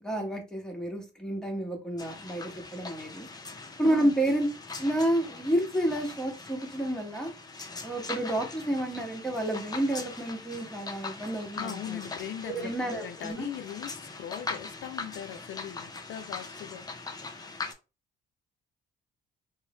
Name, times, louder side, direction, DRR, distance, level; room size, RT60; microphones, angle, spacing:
voice 1, 0.0-3.3 3.8-4.5 4.8-7.3 7.8-12.0 12.5-13.5, right 1 dB, 5° left, 1.0 m, -30 dB
sound 1, 2.0-17.7, left 3 dB, 20° left, 0.5 m, -41 dB
voice 2, 3.8-4.1 11.5-17.1, left 10 dB, 70° left, 0.4 m, -40 dB
3.1 x 2.0 x 2.9 m
cardioid pair, 90°, 20 cm